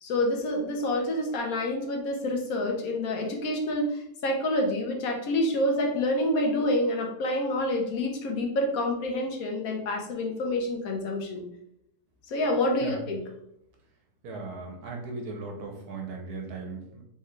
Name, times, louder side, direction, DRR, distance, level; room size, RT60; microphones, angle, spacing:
voice 1, 0.0-11.4 12.3-13.2, left 1 dB, 65° left, 1 dB, 1.3 m, -27 dB
voice 2, 14.2-17.0, right 3 dB, 75° right, 2 dB, 1.3 m, -37 dB
4.5 x 3.5 x 3.2 m, 0.78 s
omnidirectional pair, 1.7 m